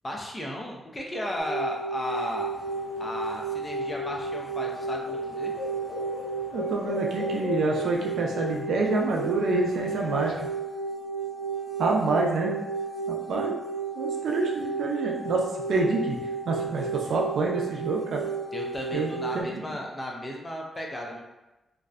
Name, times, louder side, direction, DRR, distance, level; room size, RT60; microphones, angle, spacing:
voice 1, 0.0-2.5 3.0-5.5 18.5-21.2, left 1 dB, 20° left, 0 dB, 0.5 m, -34 dB
sound 1, 1.4-19.4, right 4 dB, 10° right, 0.8 m, -32 dB
sound 2, 2.5-10.4, left 4 dB, 80° left, 0.3 m, -42 dB
voice 2, 6.5-10.5 11.8-12.5 13.1-13.6 14.0-15.4 15.7-16.2 16.4-18.2 18.9-19.5, right 3 dB, 80° right, -1 dB, 0.4 m, -27 dB
2.6 x 2.0 x 2.4 m, 0.99 s
cardioid pair, 80°, 0 cm